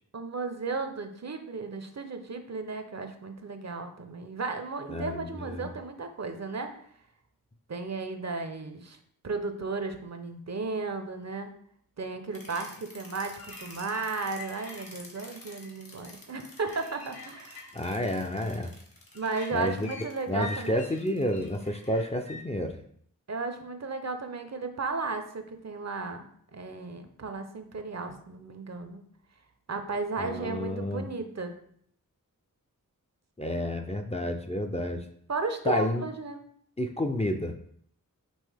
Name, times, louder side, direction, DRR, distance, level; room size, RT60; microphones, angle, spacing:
voice 1, 0.1-6.7 7.7-9.0 9.2-11.5 12.0-17.7 19.1-20.9 23.3-26.3 26.5-29.0 29.7-31.5 35.3-36.4, right 3 dB, 50° right, 7 dB, 0.6 m, -34 dB
voice 2, 4.9-5.7 17.7-18.7 19.5-19.9 20.3-22.8 30.2-31.1 33.4-35.0 35.7-36.1 36.8-37.5, left 1 dB, 20° left, 4 dB, 0.4 m, -30 dB
sound 1, 12.3-22.4, left 2 dB, 75° left, 1.1 m, -46 dB
5.4 x 2.9 x 3.4 m, 0.63 s
wide cardioid pair, 50°, 34 cm